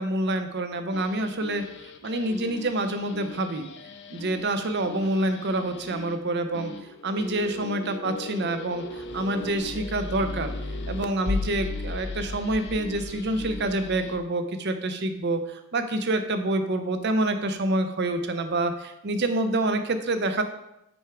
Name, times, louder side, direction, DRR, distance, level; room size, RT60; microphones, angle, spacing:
voice 1, 0.0-1.6 2.0-3.7 4.1-6.7 7.0-8.8 9.1-10.5 10.9-15.4 15.7-20.4, right 1 dB, 50° right, 8 dB, 0.6 m, -27 dB
sound 1, 0.9-14.2, left 2 dB, 55° left, 0.6 m, -36 dB
6.2 x 4.5 x 4.9 m, 0.85 s
head